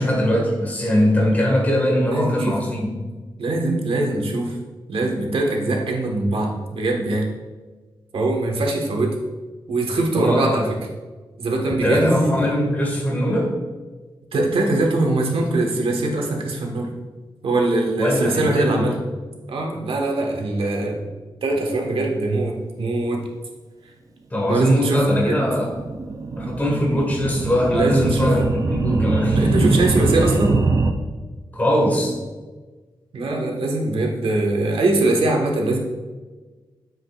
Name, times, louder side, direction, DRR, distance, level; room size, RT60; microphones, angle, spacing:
voice 1, 0.0-2.9 10.1-10.5 11.7-13.5 18.0-18.9 24.3-25.7 26.4-29.8 31.5-32.1, left 1 dB, 20° left, -2 dB, 1.8 m, -21 dB
voice 2, 2.1-2.6 3.4-4.5 4.9-7.2 8.1-9.1 9.7-10.7 11.4-12.5 14.3-16.9 17.4-19.0 19.5-21.0 21.4-23.2 24.5-25.4 27.7-28.3 29.3-30.6 33.1-35.8, right 2 dB, 90° right, 0 dB, 1.5 m, -22 dB
sound 1, 24.8-30.9, right 4 dB, 40° right, 0.5 m, -23 dB
9.5 x 7.7 x 2.5 m, 1.3 s
wide cardioid pair, 180°, 9 cm